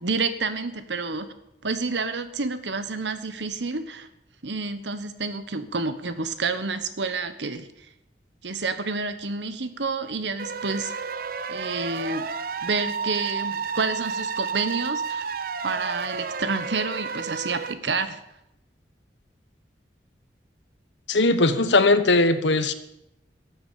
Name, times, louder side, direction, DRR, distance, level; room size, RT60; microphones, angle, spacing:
voice 1, 0.0-1.3 1.6-4.1 4.4-7.7 8.4-10.9 11.5-12.3 12.6-15.3 15.6-18.2, right 4 dB, 80° right, 11 dB, 1.2 m, -29 dB
sound 1, 10.4-17.7, right 5 dB, 50° right, 0.7 m, -31 dB
voice 2, 21.1-22.7, left 2 dB, 85° left, 11 dB, 1.2 m, -19 dB
13.5 x 8.4 x 8.5 m, 0.85 s
head